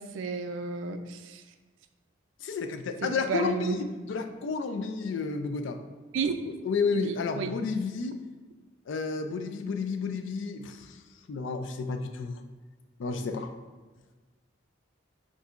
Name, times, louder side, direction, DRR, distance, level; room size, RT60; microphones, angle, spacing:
voice 1, 0.0-1.4 3.0-3.8 6.1-6.3 6.9-7.5, right 4 dB, 80° right, 8 dB, 0.4 m, -32 dB
voice 2, 2.4-5.8 6.6-8.2 8.9-11.0 11.3-12.4 13.0-13.5, left 4 dB, 75° left, 7 dB, 0.4 m, -31 dB
6.3 x 2.6 x 2.4 m, 1.3 s
head